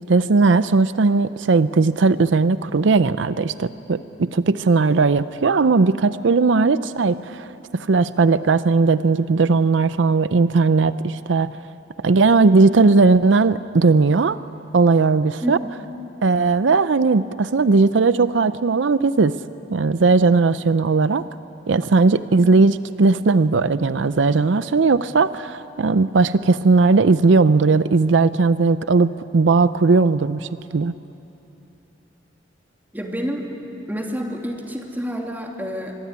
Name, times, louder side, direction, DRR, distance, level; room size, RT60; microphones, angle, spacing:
voice 1, 0.1-7.5 7.7-11.5 12.0-14.4 14.7-15.6 16.2-19.3 19.7-21.2 21.7-30.9, right 4 dB, 85° right, 14 dB, 0.6 m, -17 dB
voice 2, 6.5-6.9 15.4-15.7 22.2-22.5 32.9-33.4 33.9-36.0, equal, 10° right, 1 dB, 2.7 m, -29 dB
25.0 x 22.0 x 9.6 m, 3.0 s
head